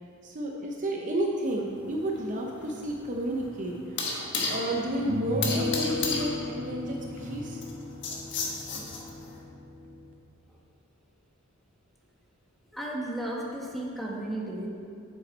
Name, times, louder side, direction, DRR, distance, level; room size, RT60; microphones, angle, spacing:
voice 1, 0.2-3.8 4.0-7.6, right 1 dB, 40° right, 0 dB, 0.6 m, -31 dB
sound 1, 1.5-9.4, left 4 dB, 60° left, 1.2 m, -35 dB
sound 2, 3.8-3.9 4.9-10.1, left 2 dB, 65° right, 1.4 m, -35 dB
voice 2, 12.7-14.7, right 1 dB, ahead, -3 dB, 1.1 m, -34 dB
8.1 x 7.0 x 4.3 m, 2.4 s
head